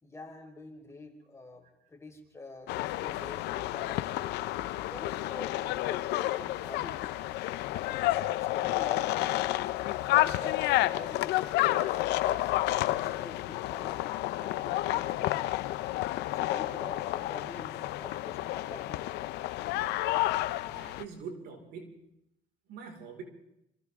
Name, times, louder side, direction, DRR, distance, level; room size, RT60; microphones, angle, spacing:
voice 1, 0.0-4.0 4.5-7.1 7.7-14.0 14.4-15.7 16.3-19.1, left 2 dB, 15° left, 1 dB, 4.8 m, -47 dB
sound 1, 2.7-21.0, left 16 dB, 85° left, 0.8 m, -30 dB
voice 2, 20.6-22.0 22.7-23.2, right 6 dB, 80° right, 2 dB, 5.3 m, -44 dB
27.0 x 26.5 x 3.8 m, 0.82 s
cardioid pair, 110°, 17 cm